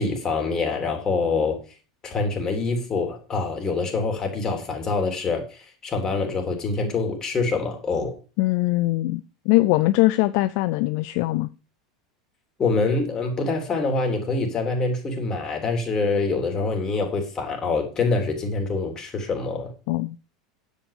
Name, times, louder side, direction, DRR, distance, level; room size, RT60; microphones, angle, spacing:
voice 1, 0.0-1.6 2.0-8.1 12.6-19.7, left 3 dB, 25° left, 3.5 m, -25 dB
voice 2, 8.4-11.5 19.9-20.2, left 19 dB, 50° left, 0.4 m, -21 dB
9.9 x 8.6 x 5.1 m
figure-of-eight pair, 80°, 3 cm